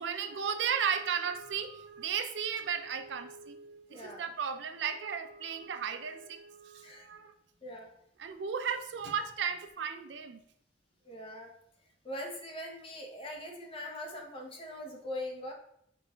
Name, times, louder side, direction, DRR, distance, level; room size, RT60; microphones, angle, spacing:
voice 1, 0.0-7.3 8.2-10.4, right 7 dB, 85° right, 8 dB, 0.4 m, -35 dB
voice 2, 3.9-4.3 6.8-7.1 7.6-7.9 11.0-11.5 12.0-15.5, left 1 dB, 30° left, 1 dB, 0.8 m, -41 dB
5.3 x 4.1 x 2.3 m, 0.71 s
head